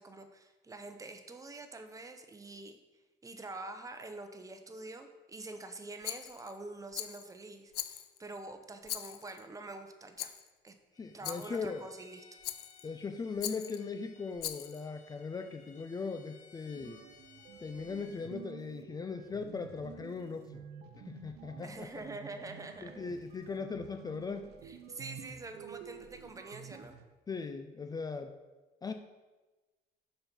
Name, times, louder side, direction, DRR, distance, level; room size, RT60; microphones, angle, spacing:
voice 1, 0.0-2.8 3.2-10.3 10.6-10.8 11.1-12.2 21.6-23.0 24.6-27.0, right 2 dB, 20° right, 7 dB, 0.8 m, -46 dB
Rattle, 6.0-6.5 6.9-7.3 7.7-8.3 8.9-9.4 10.2-10.5 11.2-11.6 12.4-12.9 13.4-13.8 14.4-14.9, left 13 dB, 70° left, 0.5 m, -41 dB
Bowed string instrument, 10.9-18.3, left 6 dB, 45° left, 1.0 m, -61 dB
voice 2, 11.0-11.9 12.8-17.0 17.6-20.6 21.0-22.0 22.8-24.5 27.3-28.3 28.8-28.9, left 4 dB, 20° left, 7 dB, 0.4 m, -39 dB
sound 1, 16.7-27.0, right 8 dB, 75° right, 0.7 m, -51 dB
6.9 x 5.5 x 5.3 m, 1.2 s
cardioid pair, 110°, 17 cm